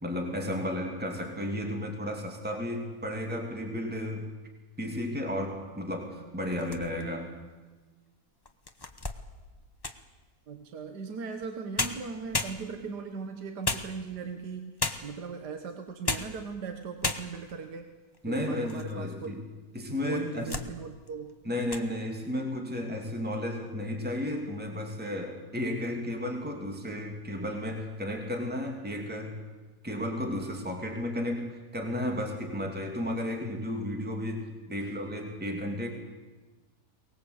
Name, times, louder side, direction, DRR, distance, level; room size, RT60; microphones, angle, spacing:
voice 1, 0.0-4.3 4.8-7.4 18.2-19.4 19.7-20.6 21.4-29.4 29.8-35.9, left 1 dB, 5° right, 2 dB, 2.7 m, -33 dB
sound 1, 6.5-7.2 7.8-7.9 8.5-10.1 11.4-11.5 11.8-13.0 13.6-14.3 14.8-15.3 15.9-16.4 16.7-16.8 17.0-17.6 18.1-18.9 19.2-19.3 20.0-20.7 21.1-21.3 21.6-21.9, left 3 dB, 20° left, 0.8 m, -34 dB
voice 2, 10.5-14.7 15.0-17.9 18.2-19.3 19.9-21.4 34.8-35.0, right 5 dB, 75° right, 6 dB, 1.9 m, -39 dB
23.0 x 19.5 x 8.3 m, 1.3 s
omnidirectional pair, 1.8 m